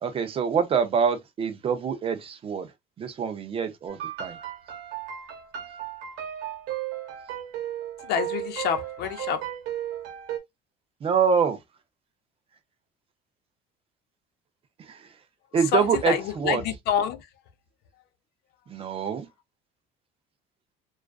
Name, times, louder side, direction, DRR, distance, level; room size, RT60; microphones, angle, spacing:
voice 1, 0.0-2.7 3.0-4.4 11.0-11.6 14.8-15.1 15.5-16.6 18.7-19.3, right 6 dB, 30° right, 0.4 m, -25 dB
sound 1, 3.9-10.4, right 11 dB, 85° right, 0.9 m, -35 dB
voice 2, 8.0-9.4 15.7-17.3, left 9 dB, 65° left, 0.5 m, -27 dB
2.4 x 2.3 x 2.2 m
cardioid pair, 140°, 18 cm